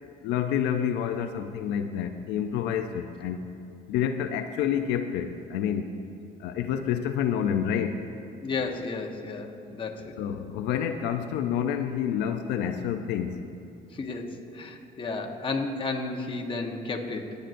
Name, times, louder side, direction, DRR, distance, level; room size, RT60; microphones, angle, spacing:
voice 1, 0.0-3.5 3.9-5.9 6.4-8.0 10.2-13.4, left 8 dB, 90° left, 7 dB, 0.5 m, -28 dB
voice 2, 8.4-10.2 13.9-17.4, left 3 dB, 30° left, 3 dB, 1.1 m, -33 dB
21.0 x 9.3 x 2.6 m, 2.6 s
cardioid pair, 110°, 17 cm